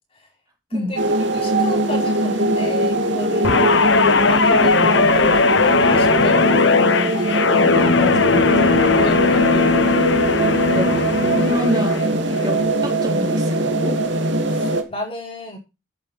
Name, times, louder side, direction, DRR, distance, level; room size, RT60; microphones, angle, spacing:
voice 1, 0.7-3.9 4.2-8.1 8.9-9.9 11.7-12.0 14.5-15.6, left 1 dB, 30° left, 1 dB, 4.6 m, -32 dB
sound 1, 1.0-14.8, right 1 dB, 80° right, 2.6 m, -21 dB
Guitar, 3.4-12.0 12.4-12.7, left 4 dB, 80° left, 1.0 m, -18 dB
voice 2, 7.7-8.9 10.7-11.1 11.4-14.0, equal, 20° right, 1 dB, 3.6 m, -28 dB
14.0 x 9.2 x 3.2 m, 0.27 s
head